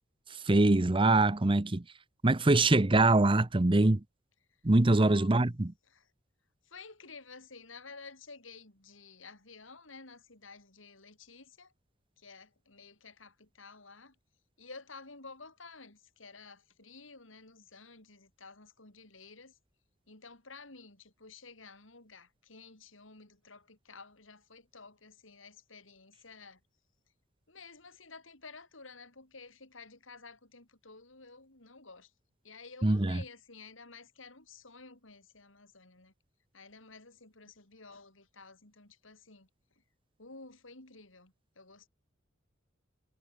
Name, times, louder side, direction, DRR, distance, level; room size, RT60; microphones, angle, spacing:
voice 1, 0.3-1.8 2.2-4.0 4.6-5.7 32.8-33.2, right 2 dB, 25° right, 0.8 m, -24 dB
voice 2, 4.9-5.3 5.9-6.1 6.6-11.7 12.2-14.2 14.6-19.6 20.1-26.6 27.5-32.1 32.4-36.1 36.5-39.5 39.8-39.9 40.2-41.9, left 4 dB, 80° left, 5.4 m, -52 dB
head